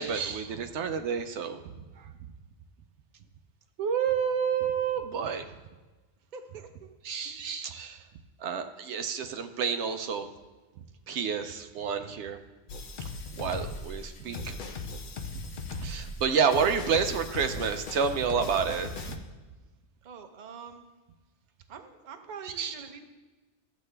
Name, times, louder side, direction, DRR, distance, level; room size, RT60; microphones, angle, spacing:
voice 1, 0.0-1.6 2.0-2.1 3.8-5.5 7.0-8.0 8.4-10.3 11.1-12.4 13.0-13.1 13.4-14.6 15.3-15.4 15.8-19.1 22.6-22.7, right 6 dB, 80° right, 8 dB, 0.9 m, -29 dB
voice 2, 6.3-6.9 7.2-7.4 20.0-20.9 21.7-23.0, right 5 dB, 45° right, 6 dB, 0.8 m, -45 dB
sound 1, 12.7-19.2, left 4 dB, 50° left, 0.7 m, -39 dB
13.0 x 7.3 x 3.3 m, 1.2 s
omnidirectional pair, 1.2 m